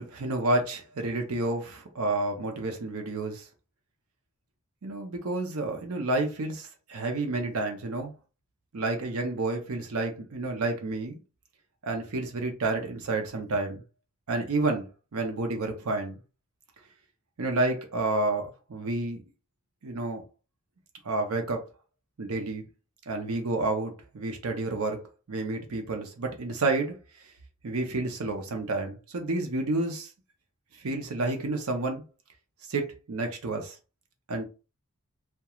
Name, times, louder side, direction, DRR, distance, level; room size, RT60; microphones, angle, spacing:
voice 1, 0.0-3.5 4.8-8.1 8.7-11.2 11.8-13.8 14.3-16.2 17.4-19.2 19.8-20.2 21.0-21.6 22.2-22.6 23.1-25.0 25.3-27.0 27.6-30.1 30.8-32.0 32.7-33.7 34.3-34.4, right 2 dB, 75° right, 0.6 m, -30 dB
2.9 x 2.2 x 2.3 m
head